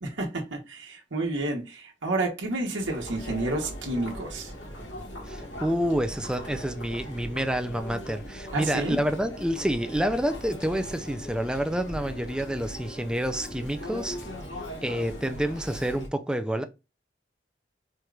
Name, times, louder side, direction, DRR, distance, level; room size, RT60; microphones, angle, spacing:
voice 1, 0.0-4.5 8.5-9.0, right 2 dB, 90° right, 1.1 m, -30 dB
Chatter, 2.8-16.1, equal, 75° left, 1.4 m, -39 dB
voice 2, 5.2-14.2 14.8-16.6, equal, 5° right, 0.4 m, -28 dB
4.4 x 2.5 x 3.2 m
head